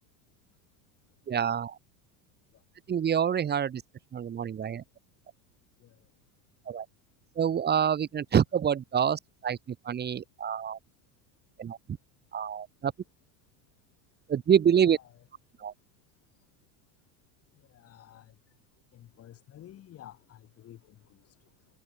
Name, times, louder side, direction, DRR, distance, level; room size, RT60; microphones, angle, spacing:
voice 1, 1.3-1.8 2.9-3.8 4.1-4.8 6.7-6.9 7.4-10.8 11.6-11.8 12.3-12.9 14.3-15.0 15.6-15.7, right 8 dB, 25° right, 2.1 m, -27 dB
voice 2, 14.8-15.1 17.7-18.3 18.9-20.8, left 12 dB, 40° left, 7.8 m, -50 dB
supercardioid pair, 120°, 36 cm